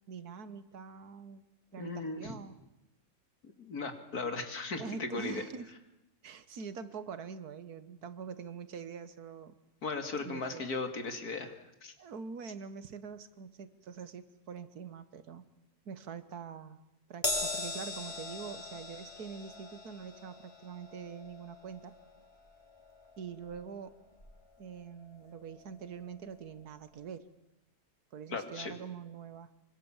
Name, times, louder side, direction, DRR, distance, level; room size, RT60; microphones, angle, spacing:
voice 1, 0.1-1.5 1.7-2.6 4.8-5.7 6.2-9.5 10.2-10.7 12.0-15.5 15.9-16.8 17.1-21.9 23.2-24.0 24.6-27.3 28.1-29.5, right 6 dB, 85° right, 13 dB, 1.8 m, -44 dB
voice 2, 1.8-2.4 3.6-5.4 9.8-11.5 11.8-11.9 28.3-28.7, left 3 dB, 90° left, 6 dB, 3.0 m, -37 dB
Crash cymbal, 17.2-23.9 24.2-24.4 25.5-25.6, left 2 dB, 20° left, 3.0 m, -40 dB
25.5 x 25.0 x 7.3 m, 0.88 s
omnidirectional pair, 1.6 m